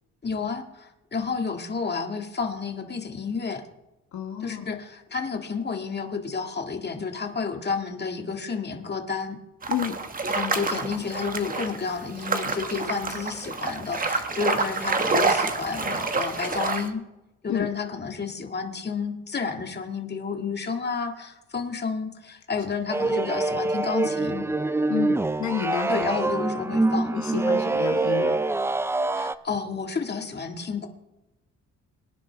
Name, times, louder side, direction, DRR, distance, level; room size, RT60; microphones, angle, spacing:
voice 1, 0.2-3.6 4.4-9.4 10.3-17.0 17.4-24.5 25.9-27.1 29.1-30.9, left 5 dB, 35° left, 4 dB, 2.0 m, -31 dB
voice 2, 4.1-4.7 9.7-10.0 17.5-17.7 24.9-26.1 27.1-28.4, left 9 dB, 70° left, 3 dB, 1.4 m, -30 dB
sound 1, 9.6-16.9, right 3 dB, 30° right, 1.4 m, -27 dB
scream variable speed comb, 22.9-29.3, right 2 dB, 10° right, 0.4 m, -25 dB
23.5 x 9.9 x 3.5 m, 0.99 s
cardioid pair, 90°, 30 cm